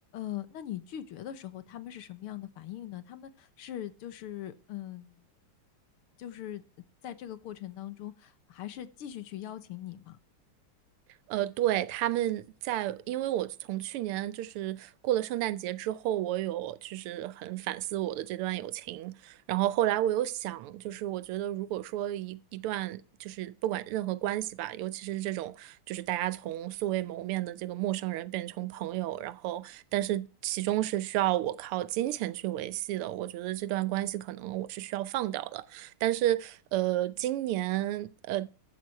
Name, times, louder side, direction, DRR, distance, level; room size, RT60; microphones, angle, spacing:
voice 1, 0.1-5.2 6.2-6.6 7.0-10.2, left 12 dB, 80° left, 1.9 m, -41 dB
voice 2, 11.3-38.5, right 14 dB, 85° right, 1.6 m, -32 dB
13.5 x 8.3 x 4.6 m
omnidirectional pair, 2.4 m